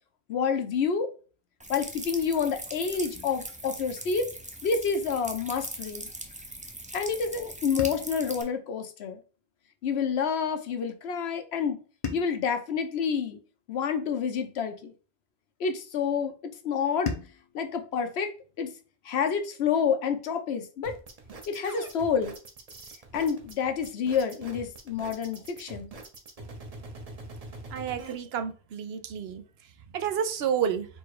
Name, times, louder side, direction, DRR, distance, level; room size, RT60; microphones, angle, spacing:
voice 1, 0.3-1.1 1.7-4.3 4.6-6.1 6.9-9.2 9.8-11.8 12.1-13.4 13.7-14.9 15.6-17.1 17.5-18.3 18.6-18.7 19.0-21.0 21.5-22.3 23.1-25.9, left 6 dB, 80° left, 1.0 m, -28 dB
sound 1, 1.6-8.4, right 1 dB, 10° right, 0.4 m, -40 dB
sound 2, 3.1-5.4 7.8-10.1 12.0-14.5 17.1-19.6, left 5 dB, 40° left, 0.6 m, -42 dB
sound 3, 20.8-28.1, right 2 dB, 40° right, 0.8 m, -44 dB
voice 2, 27.7-29.4 29.9-30.9, right 8 dB, 75° right, 0.8 m, -30 dB
4.2 x 2.3 x 4.7 m
omnidirectional pair, 1.1 m